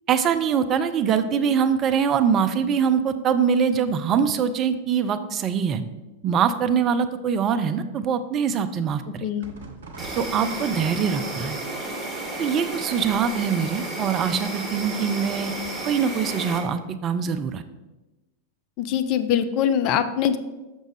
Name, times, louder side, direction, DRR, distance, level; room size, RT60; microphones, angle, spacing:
voice 1, 0.1-5.8 6.2-9.2 10.2-11.6 12.4-15.5 15.8-17.6, right 7 dB, 30° right, 10 dB, 0.4 m, -23 dB
voice 2, 9.2-9.5 18.8-20.4, left 9 dB, 40° left, 10 dB, 0.4 m, -23 dB
sound 1, 9.4-11.5 12.9-13.7 15.3-16.0, right 3 dB, 65° right, 0.8 m, -44 dB
Insect, 10.0-16.6, right 2 dB, 15° right, 1.5 m, -32 dB
6.3 x 6.0 x 3.2 m, 1.1 s
figure-of-eight pair, 90°, 0 cm